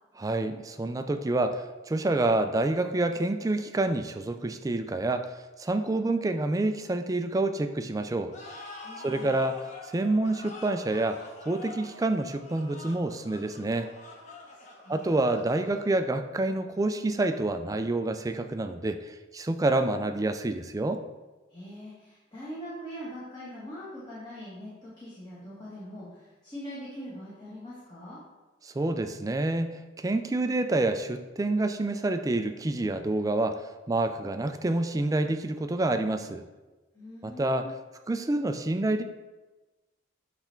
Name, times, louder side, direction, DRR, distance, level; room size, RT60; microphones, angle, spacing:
voice 1, 0.2-5.3 5.6-8.3 9.0-9.6 9.9-11.2 11.5-13.9 14.9-21.0 28.6-33.6 33.9-36.4 37.2-37.7 38.1-39.0, right 2 dB, 20° right, 8 dB, 0.3 m, -28 dB
sound 1, 8.3-16.2, left 2 dB, 40° left, 0.9 m, -46 dB
voice 2, 8.8-9.4 14.4-15.1 21.5-28.2 36.9-37.7, equal, 25° left, -9 dB, 1.5 m, -42 dB
7.8 x 3.4 x 4.4 m, 1.2 s
head